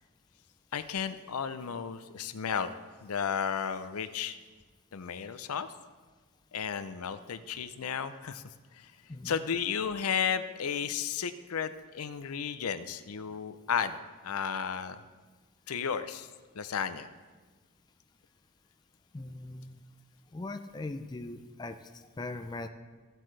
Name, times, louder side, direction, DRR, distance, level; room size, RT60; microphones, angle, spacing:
voice 1, 0.7-2.7 3.0-4.4 4.9-5.7 6.5-8.4 8.8-8.9 9.2-14.0 14.2-15.0 15.7-16.3 16.5-17.1, left 7 dB, 90° left, 12 dB, 0.5 m, -33 dB
voice 2, 19.1-19.8 20.3-22.7, left 2 dB, 20° left, 7 dB, 0.4 m, -40 dB
15.5 x 7.6 x 3.2 m, 1.3 s
head